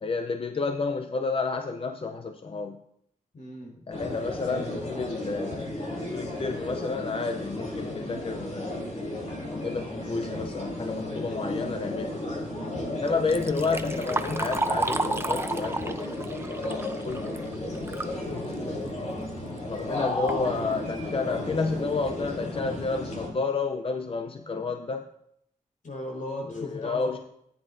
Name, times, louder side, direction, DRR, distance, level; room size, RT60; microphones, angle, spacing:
voice 1, 0.0-2.8 3.9-5.8 6.1-8.9 9.5-12.2 12.9-17.4 19.5-25.1 26.5-27.2, left 4 dB, 40° left, 6 dB, 0.5 m, -31 dB
voice 2, 3.3-3.7 12.6-13.0 18.0-18.5 25.8-27.1, left 1 dB, 75° left, -1 dB, 4.3 m, -38 dB
sound 1, 3.9-23.3, left 1 dB, 60° left, 3.4 m, -34 dB
Liquid, 13.1-18.2 18.6-18.7 19.6-19.7 20.1-20.4 21.0-21.1 21.6-21.7 22.2-22.4, right 2 dB, 20° right, 0.5 m, -32 dB
14.5 x 9.5 x 2.6 m, 0.75 s
wide cardioid pair, 125°, 14 cm